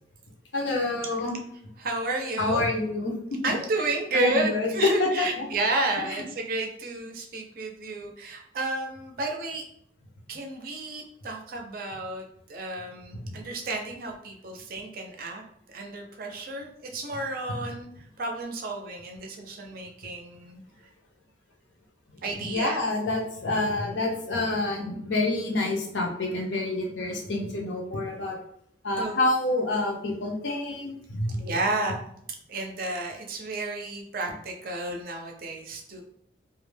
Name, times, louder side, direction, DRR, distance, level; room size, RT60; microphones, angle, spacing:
voice 1, 0.5-1.4 2.4-3.1 4.1-5.1 5.4-5.5 6.1-6.2 13.2-13.4 22.5-28.4 28.8-31.6, left 2 dB, 85° left, 0 dB, 0.6 m, -27 dB
voice 2, 1.8-2.6 3.4-9.7 10.3-12.2 12.5-15.4 15.7-20.6 22.2-22.8 29.0-29.1 31.4-32.0 32.5-36.0, right 2 dB, 50° right, 2 dB, 0.4 m, -31 dB
2.3 x 2.1 x 3.1 m, 0.69 s
head